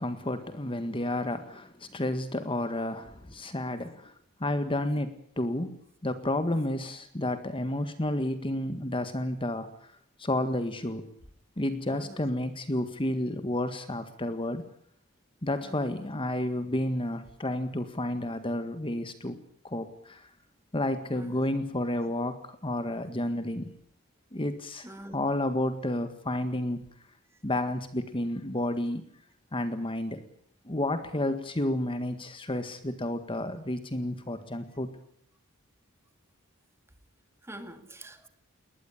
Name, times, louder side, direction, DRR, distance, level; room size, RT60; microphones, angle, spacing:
voice 1, 0.0-4.1 4.4-5.8 6.0-9.9 10.2-11.1 11.6-14.6 15.4-19.4 19.6-20.3 20.7-23.7 24.3-24.9 25.1-26.8 27.4-29.0 29.5-30.2 30.6-35.0, left 1 dB, 25° left, 9 dB, 1.7 m, -31 dB
voice 2, 11.9-12.2 15.6-16.0 21.1-21.5 24.8-25.3 37.4-38.3, right 1 dB, 10° right, 8 dB, 2.4 m, -46 dB
21.0 x 19.5 x 8.6 m, 0.64 s
head